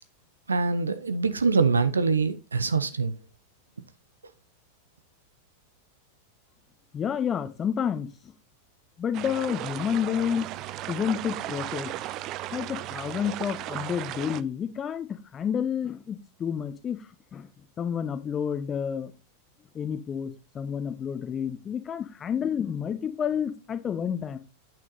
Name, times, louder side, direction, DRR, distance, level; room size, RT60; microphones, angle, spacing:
voice 1, 0.5-3.2, right 4 dB, 75° right, 0.8 m, -24 dB
voice 2, 6.9-8.1 9.0-10.5 10.9-11.9 12.5-17.0 17.3-17.5 17.8-19.1 19.7-24.4, left 8 dB, 25° left, 1.1 m, -29 dB
sound 1, 9.1-14.4, right 14 dB, 35° right, 0.4 m, -36 dB
9.0 x 6.1 x 4.1 m
figure-of-eight pair, 90°, 0 cm